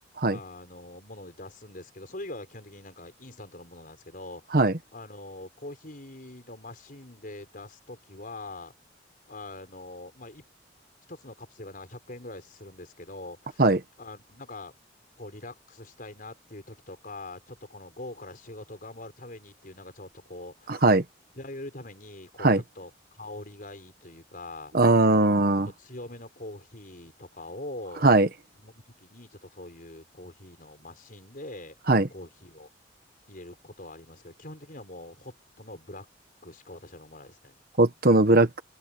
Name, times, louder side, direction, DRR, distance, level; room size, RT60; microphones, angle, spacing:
voice 1, 0.3-4.6 4.9-8.7 9.3-10.4 11.1-13.7 14.0-14.7 15.2-20.9 21.4-24.7 25.2-25.5 25.8-28.0 28.6-32.7 33.3-36.1 36.4-37.6, left 2 dB, 50° left, 5.3 m, -43 dB
voice 2, 20.7-21.0 22.4-22.6 24.7-25.7 28.0-28.3 31.9-32.1 37.8-38.6, right 2 dB, 55° right, 1.3 m, -19 dB
open air
head